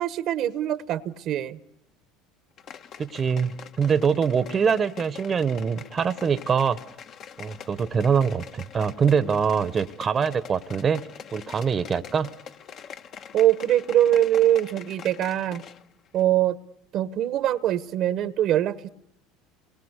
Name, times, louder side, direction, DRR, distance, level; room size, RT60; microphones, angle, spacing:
voice 1, 0.0-1.6 13.3-15.6 16.1-16.6 16.9-18.9, right 12 dB, 55° right, 16 dB, 1.1 m, -23 dB
sound 1, 2.6-15.9 16.1-16.2, left 7 dB, 50° left, 1.2 m, -44 dB
voice 2, 3.0-6.8 7.4-11.0 11.3-12.3, right 6 dB, 30° right, 15 dB, 1.0 m, -24 dB
29.5 x 22.0 x 8.2 m, 0.75 s
supercardioid pair, 95°, 0 cm